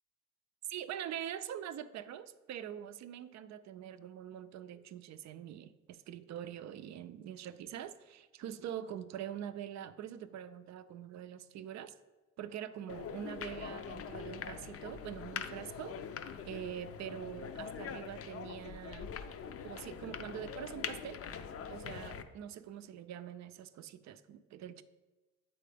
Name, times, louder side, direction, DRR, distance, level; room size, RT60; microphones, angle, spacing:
voice 1, 0.7-11.9 12.4-16.0 16.4-19.1 19.6-21.2 21.7-24.8, right 10 dB, 65° right, 13 dB, 0.4 m, -44 dB
sound 1, 12.9-22.2, left 7 dB, 50° left, 0.5 m, -43 dB
7.5 x 4.3 x 3.3 m, 1.2 s
cardioid pair, 90°, 30 cm